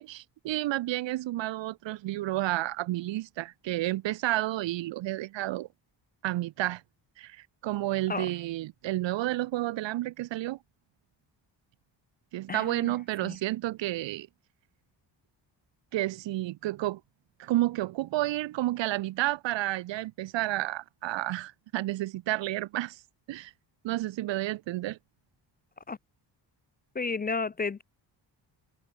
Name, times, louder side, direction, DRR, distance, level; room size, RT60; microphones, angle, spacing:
voice 1, 0.0-5.7 6.2-6.8 7.2-10.6 12.3-14.3 15.9-17.0 17.4-23.0 23.3-23.5 23.8-25.0, right 16 dB, 75° right, 0.7 m, -31 dB
voice 2, 12.5-12.9 13.2-13.4 25.9-26.0 26.9-27.8, left 4 dB, 20° left, 0.4 m, -32 dB
wide cardioid pair, 160°, 44 cm